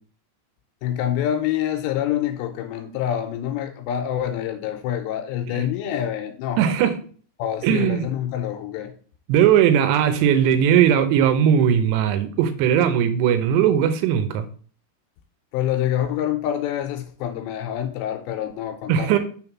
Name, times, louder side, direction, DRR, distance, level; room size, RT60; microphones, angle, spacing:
voice 1, 0.8-6.6 7.4-8.9 15.5-19.2, left 10 dB, 85° left, 2.8 m, -26 dB
voice 2, 6.6-7.0 7.6-8.0 9.3-14.5 18.9-19.2, right 9 dB, 80° right, 2.9 m, -18 dB
6.4 x 3.5 x 5.8 m
omnidirectional pair, 5.1 m